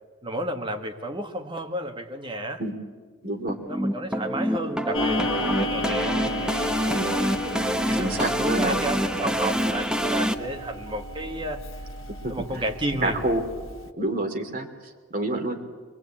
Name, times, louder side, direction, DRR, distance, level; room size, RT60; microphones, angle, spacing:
voice 1, 0.2-2.6 3.7-11.6 12.3-13.2, right 1 dB, 25° right, 4 dB, 1.9 m, -32 dB
voice 2, 3.2-3.6 6.9-7.1 8.0-8.8 12.2-12.4 13.0-13.4 13.9-15.6, right 1 dB, 45° right, 4 dB, 2.8 m, -28 dB
sound 1, 3.5-10.3, equal, 5° right, 1.0 m, -26 dB
Clock, 4.9-13.9, left 1 dB, 80° left, 1.3 m, -34 dB
24.5 x 21.5 x 8.8 m, 1.5 s
head